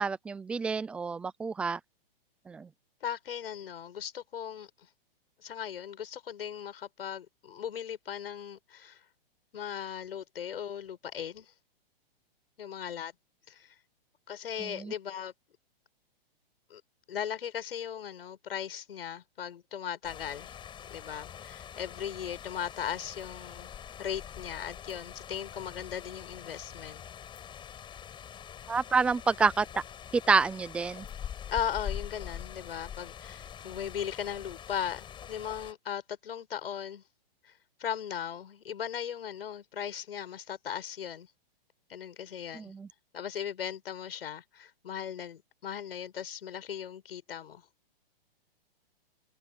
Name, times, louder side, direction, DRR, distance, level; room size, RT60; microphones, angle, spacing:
voice 1, 0.0-1.8 2.5-2.7 14.6-14.9 28.7-29.7 30.1-31.1 42.5-42.9, right 4 dB, 5° right, 0.4 m, -28 dB
voice 2, 3.0-4.9 5.4-9.0 9.5-11.5 12.6-13.1 13.5-13.8 14.3-15.3 16.7-16.8 17.1-20.6 20.9-23.7 24.0-27.0 31.5-37.0 37.4-37.5 37.8-41.3 41.9-42.7 43.1-47.6, left 9 dB, 75° left, 7.4 m, -38 dB
sound 1, 20.0-35.7, left 9 dB, 15° left, 7.4 m, -44 dB
hypercardioid pair, 150°, 29 cm